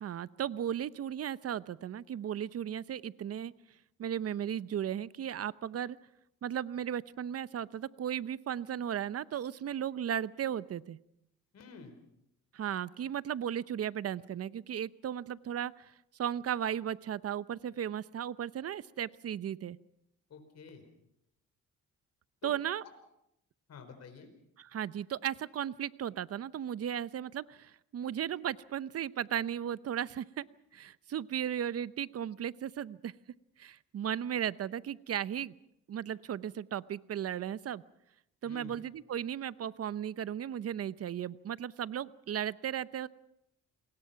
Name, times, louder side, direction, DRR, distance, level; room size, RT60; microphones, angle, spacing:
voice 1, 0.0-3.5 4.0-6.0 6.4-11.0 12.5-15.9 16.2-19.8 22.4-22.8 24.6-30.4 30.7-33.1 33.6-35.6 35.9-37.8 38.4-43.1, right 9 dB, 55° right, 17 dB, 0.8 m, -36 dB
voice 2, 11.5-12.0 20.3-20.8 22.4-22.5 22.8-22.9 23.7-24.3 38.4-38.8, left 5 dB, 60° left, 6 dB, 4.7 m, -50 dB
28.0 x 21.0 x 5.9 m, 0.79 s
cardioid pair, 90°, 30 cm